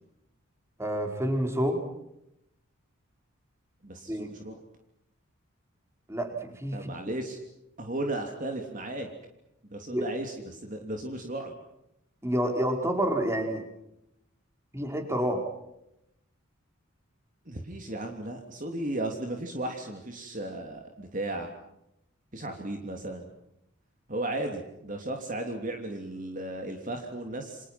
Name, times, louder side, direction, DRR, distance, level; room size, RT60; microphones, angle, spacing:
voice 1, 0.8-1.8 4.1-4.3 6.1-6.9 9.9-10.0 12.2-13.6 14.7-15.5, equal, 10° right, 4 dB, 4.8 m, -28 dB
voice 2, 3.8-4.6 6.7-7.4 7.8-9.1 9.7-11.5 17.4-21.5 22.3-23.3 24.1-27.7, right 1 dB, 40° right, 3 dB, 3.1 m, -35 dB
29.5 x 27.0 x 6.0 m, 0.83 s
head